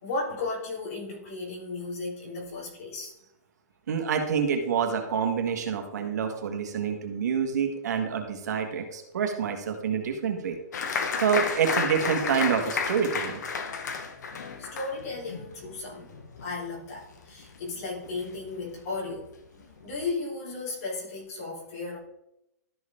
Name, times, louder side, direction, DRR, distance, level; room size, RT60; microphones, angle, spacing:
voice 1, 0.0-3.1 14.6-19.3 19.8-22.0, left 3 dB, 60° left, -4 dB, 3.6 m, -35 dB
voice 2, 3.9-10.6 11.2-13.4, right 7 dB, 75° right, 4 dB, 1.6 m, -27 dB
Applause, 10.7-17.8 18.1-18.8 19.2-19.3 19.6-20.1, left 5 dB, 80° left, 1.2 m, -32 dB
13.0 x 4.7 x 3.7 m, 0.85 s
hypercardioid pair, 150°, 9 cm